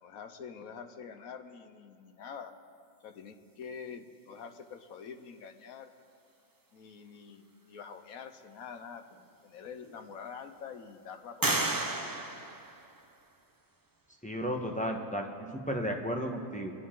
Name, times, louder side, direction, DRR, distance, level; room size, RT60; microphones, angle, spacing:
voice 1, 0.0-2.5 3.0-5.9 6.7-11.7, left 6 dB, 75° left, 7 dB, 1.3 m, -46 dB
sound 1, 9.2-9.3 9.8-10.5 11.4-13.4, right 2 dB, 25° right, 0.4 m, -33 dB
voice 2, 14.2-16.7, equal, 5° left, 1 dB, 1.0 m, -34 dB
25.0 x 11.0 x 3.8 m, 2.3 s
omnidirectional pair, 1.5 m